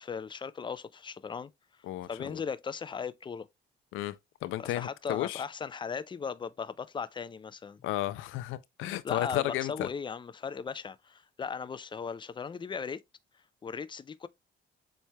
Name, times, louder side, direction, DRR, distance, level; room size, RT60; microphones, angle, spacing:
voice 1, 0.0-1.5 2.1-3.5 4.6-7.8 9.0-13.0 13.6-14.3, left 6 dB, 25° left, 0.4 m, -37 dB
voice 2, 1.8-2.4 3.9-4.1 4.4-5.4 7.8-9.9, left 15 dB, 85° left, 0.4 m, -33 dB
7.1 x 3.2 x 2.2 m
cardioid pair, 90°, 20 cm